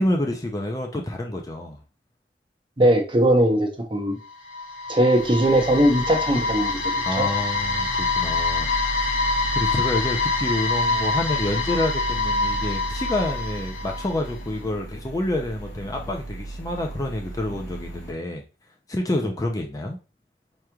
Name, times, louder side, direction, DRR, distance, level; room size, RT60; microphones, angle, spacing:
voice 1, 0.0-1.8 7.1-9.2 9.5-18.4 18.9-20.0, left 1 dB, 20° left, 0.4 m, -28 dB
voice 2, 2.8-4.2 4.9-6.7 7.2-7.3, right 1 dB, 30° right, 0.7 m, -19 dB
sound 1, 4.2-14.3, left 3 dB, 50° left, 1.1 m, -26 dB
sound 2, 5.2-18.1, right 2 dB, 75° left, 0.8 m, -36 dB
4.7 x 3.0 x 2.3 m
head